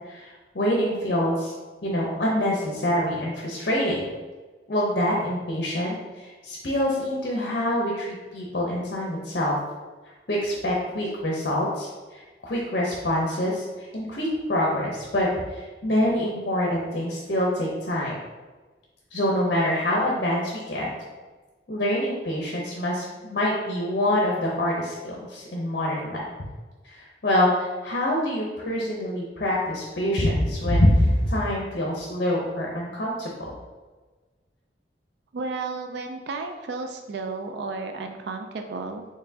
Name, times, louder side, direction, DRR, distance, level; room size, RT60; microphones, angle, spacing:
voice 1, 0.1-1.5 1.8-4.1 4.7-9.5 10.3-13.7 13.9-18.2 19.1-20.9 21.7-26.2 26.8-33.3, left 1 dB, 55° left, -3 dB, 0.7 m, -25 dB
voice 2, 35.3-39.0, right 3 dB, 70° right, 5 dB, 0.4 m, -33 dB
4.2 x 3.1 x 2.7 m, 1.3 s
head